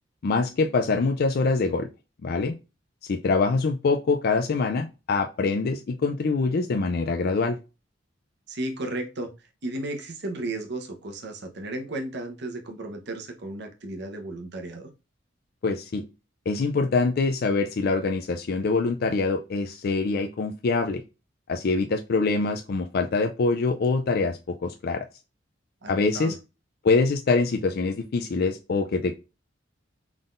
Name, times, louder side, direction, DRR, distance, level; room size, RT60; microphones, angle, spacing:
voice 1, 0.2-1.9 2.2-2.5 3.1-7.6 15.6-16.0 16.5-21.0 21.5-25.0 25.9-26.3 26.8-29.1, left 4 dB, 55° left, 0.4 m, -24 dB
voice 2, 8.5-14.9 25.8-26.4, right 2 dB, 60° right, 0.9 m, -34 dB
3.8 x 3.6 x 2.5 m
head